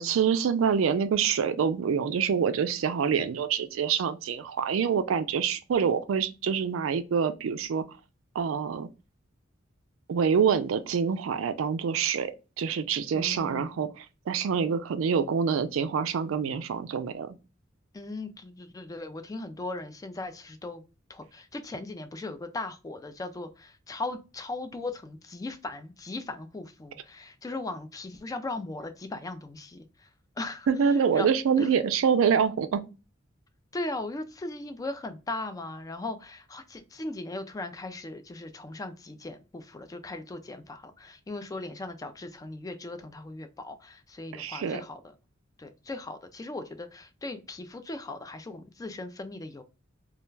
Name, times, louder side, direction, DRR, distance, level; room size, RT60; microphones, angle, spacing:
voice 1, 0.0-7.8 8.4-8.9 10.1-12.3 12.6-17.3 30.7-32.8 44.3-44.8, right 6 dB, 80° right, 0.3 m, -26 dB
voice 2, 13.1-13.8 17.9-20.8 21.1-30.1 30.4-31.3 31.6-31.7 33.7-45.0 45.6-49.6, left 2 dB, 20° left, 0.3 m, -38 dB
2.3 x 2.1 x 3.1 m
head